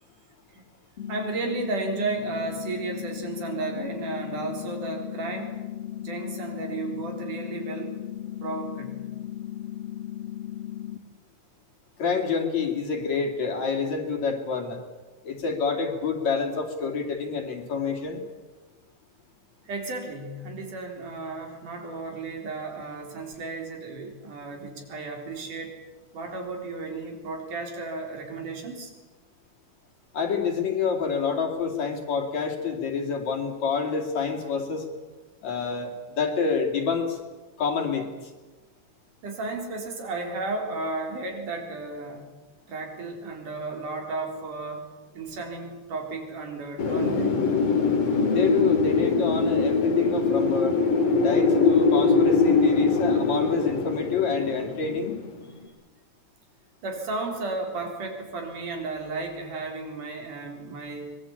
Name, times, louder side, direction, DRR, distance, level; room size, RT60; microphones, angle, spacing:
sound 1, 1.0-11.0, left 12 dB, 40° left, 0.9 m, -36 dB
voice 1, 1.1-5.6 6.0-7.9 8.4-9.0 19.7-25.8 26.1-28.9 39.2-42.3 42.7-47.4 56.8-61.2, right 3 dB, 80° right, 2 dB, 5.4 m, -33 dB
voice 2, 12.0-14.8 15.2-18.2 30.1-34.9 35.4-37.2 37.6-38.3 48.3-50.8 51.2-55.1, left 5 dB, 60° left, 2 dB, 4.1 m, -27 dB
Wind, 46.8-55.5, left 4 dB, 85° left, 4.5 m, -22 dB
24.0 x 21.0 x 8.8 m, 1.3 s
omnidirectional pair, 3.6 m